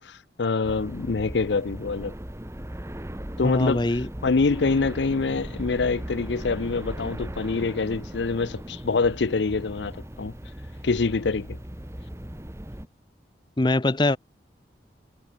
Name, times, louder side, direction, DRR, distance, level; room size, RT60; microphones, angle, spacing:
voice 1, 0.0-2.1 3.4-10.3 10.8-11.6, left 4 dB, 85° left, 0.6 m, -25 dB
sound 1, 0.6-12.9, equal, 15° right, 1.4 m, -38 dB
voice 2, 3.4-4.1 13.6-14.2, left 2 dB, 25° left, 0.8 m, -22 dB
head